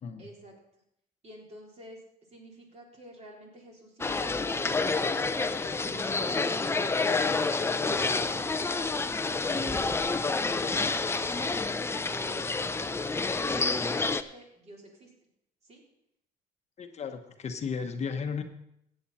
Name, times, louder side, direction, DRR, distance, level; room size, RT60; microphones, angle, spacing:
voice 1, 0.2-0.6 1.2-2.0 2.3-4.9 5.4-8.9 9.3-11.5 12.1-15.1 15.6-15.8, right 1 dB, 40° right, -2 dB, 3.9 m, -50 dB
sound 1, 4.0-14.2, left 3 dB, 15° left, 0.5 m, -28 dB
voice 2, 16.8-18.4, left 6 dB, 40° left, 6 dB, 1.0 m, -34 dB
15.0 x 8.9 x 4.2 m, 0.76 s
cardioid pair, 110°, 17 cm